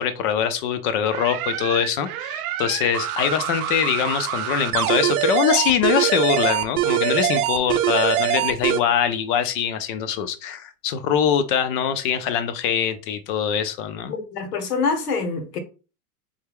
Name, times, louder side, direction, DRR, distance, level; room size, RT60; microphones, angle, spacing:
voice 1, 0.0-14.1, left 8 dB, 40° left, 0.4 m, -23 dB
sound 1, 1.1-8.8, right 12 dB, 65° right, 0.6 m, -24 dB
voice 2, 14.1-15.6, left 4 dB, 80° left, 1.1 m, -25 dB
3.3 x 2.2 x 3.4 m
hypercardioid pair, 120°, 46 cm